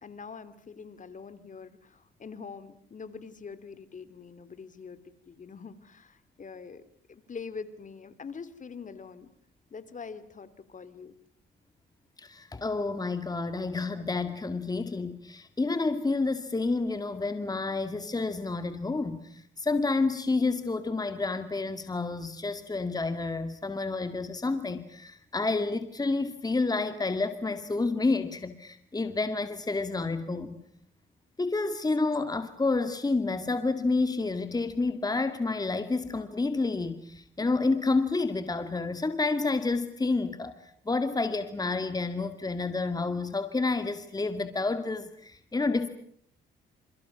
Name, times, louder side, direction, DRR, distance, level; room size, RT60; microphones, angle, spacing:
voice 1, 0.0-5.0 5.3-6.8 7.1-9.3 9.7-11.2, left 5 dB, 40° left, 14 dB, 3.0 m, -44 dB
voice 2, 12.2-30.6 31.4-40.5 40.9-45.9, left 3 dB, 20° left, 9 dB, 2.2 m, -29 dB
29.0 x 28.5 x 6.1 m, 0.63 s
cardioid pair, 90°, 20 cm